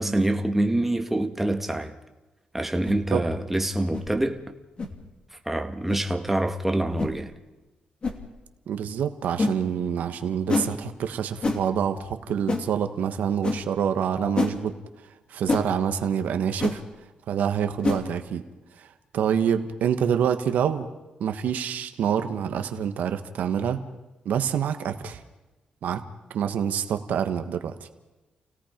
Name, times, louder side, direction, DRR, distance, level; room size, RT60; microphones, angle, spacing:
voice 1, 0.0-1.9 2.5-4.4 5.5-7.3, right 1 dB, 10° right, 1.7 m, -25 dB
sound 1, 2.8-3.0 3.9-4.1 4.8-5.0 5.9-6.0 7.0-7.2 8.0-8.2 9.4-9.6 10.5-10.7 11.4-11.6 12.5-12.7 13.4-13.6 14.3-14.6 15.5-15.7 16.6-16.8 17.8-18.0, left 3 dB, 40° left, 2.9 m, -26 dB
voice 2, 8.7-14.8 15.3-16.8 17.3-18.4 18.8-18.9 19.1-20.9 21.2-23.8 24.2-25.2 25.8-26.0 26.3-27.9, right 8 dB, 85° right, 1.4 m, -26 dB
29.0 x 17.5 x 5.2 m
cardioid pair, 100°, 3 cm